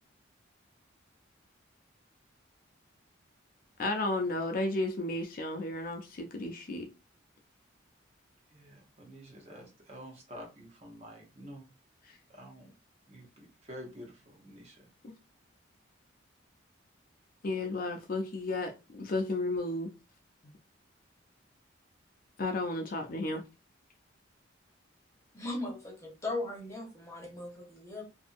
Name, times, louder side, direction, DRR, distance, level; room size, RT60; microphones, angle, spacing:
voice 1, 3.8-6.9 12.1-12.2 15.0-15.1 17.4-19.9 22.4-23.4, left 2 dB, 45° left, 0.4 m, -33 dB
voice 2, 8.5-11.7 12.3-12.7 13.1-14.9, equal, 30° right, 0.8 m, -49 dB
voice 3, 25.3-28.0, left 2 dB, 15° left, 0.8 m, -38 dB
2.6 x 2.6 x 2.4 m
head